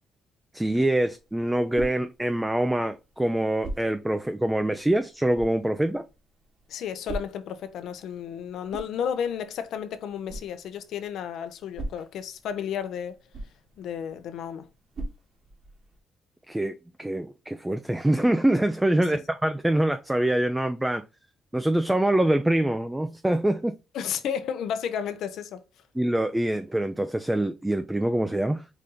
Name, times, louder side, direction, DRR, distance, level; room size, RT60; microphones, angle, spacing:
voice 1, 0.5-6.0 16.5-16.7 17.0-21.0 21.5-23.7 26.0-28.6, right 1 dB, 10° right, 0.4 m, -24 dB
sound 1, 1.1-16.0, right 2 dB, 50° right, 1.6 m, -43 dB
voice 2, 6.7-13.2 13.8-14.7 23.9-25.6, left 8 dB, 75° left, 0.7 m, -32 dB
5.0 x 2.8 x 3.7 m
cardioid pair, 90°, 0 cm